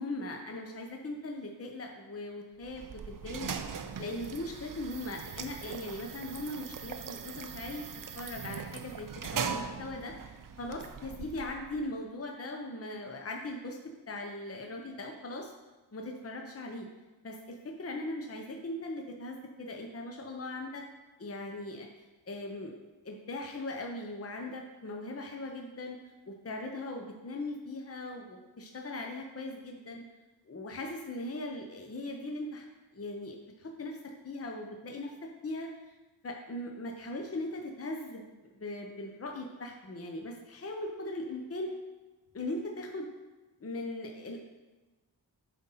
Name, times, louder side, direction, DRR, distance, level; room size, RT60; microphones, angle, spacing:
voice 1, 0.0-3.5 4.0-7.9 8.2-10.1 10.6-13.8 14.1-15.5 15.9-16.9 17.2-20.8 21.2-21.9 22.3-22.7 23.0-26.0 26.3-30.0 30.5-32.6 32.9-34.0 34.2-35.9 36.2-38.3 38.5-41.7 42.3-43.1 43.6-44.4, left 2 dB, 35° left, 2 dB, 0.8 m, -39 dB
sound 1, 2.6-11.9, right 6 dB, 50° right, 0.5 m, -40 dB
7.8 x 3.9 x 5.6 m, 1.2 s
wide cardioid pair, 80°, 43 cm